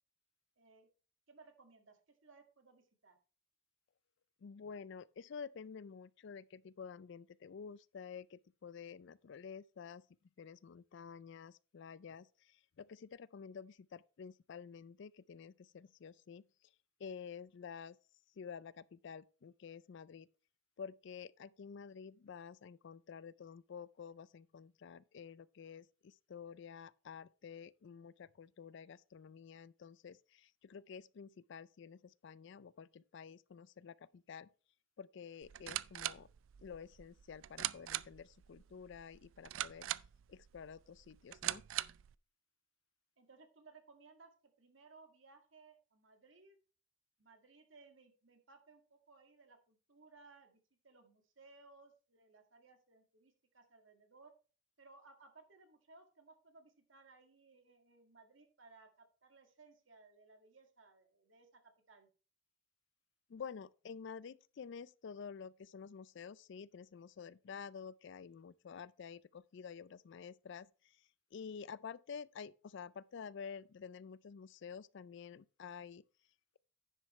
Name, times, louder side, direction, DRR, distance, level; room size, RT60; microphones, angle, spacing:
voice 1, 0.6-0.9 1.3-3.2 43.2-44.3 44.6-46.6 47.2-54.3 54.8-62.1, right 3 dB, 75° right, 1.9 m, -62 dB
voice 2, 4.4-10.0 10.4-16.4 17.0-18.0 18.4-20.3 20.8-34.5 35.0-36.3 36.6-39.9 40.3-41.6 63.3-76.0, left 6 dB, 65° left, 0.4 m, -50 dB
sound 1, 35.4-42.1, right 14 dB, 90° right, 0.4 m, -43 dB
10.0 x 7.5 x 3.2 m
head